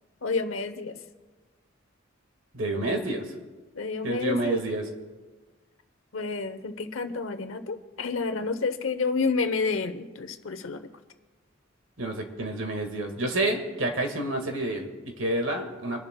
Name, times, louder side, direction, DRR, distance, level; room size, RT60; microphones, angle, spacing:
voice 1, 0.2-1.0 3.7-4.6 6.1-10.9, left 4 dB, 80° left, 11 dB, 0.8 m, -29 dB
voice 2, 2.5-3.3 4.0-4.9 12.0-16.0, right 1 dB, 70° right, 4 dB, 1.7 m, -29 dB
28.5 x 11.0 x 2.2 m, 1.3 s
head